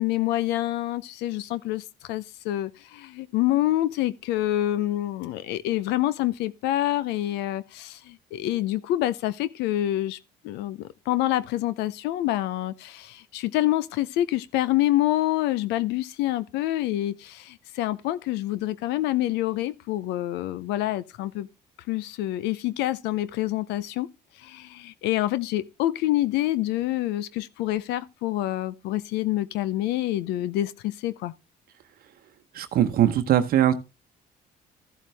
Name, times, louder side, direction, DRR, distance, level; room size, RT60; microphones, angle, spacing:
voice 1, 0.0-10.2 10.4-21.5 21.9-24.1 24.4-31.3, left 14 dB, 90° left, 0.6 m, -27 dB
voice 2, 32.5-33.7, right 11 dB, 60° right, 0.9 m, -21 dB
14.0 x 7.4 x 3.4 m
cardioid pair, 110°, 17 cm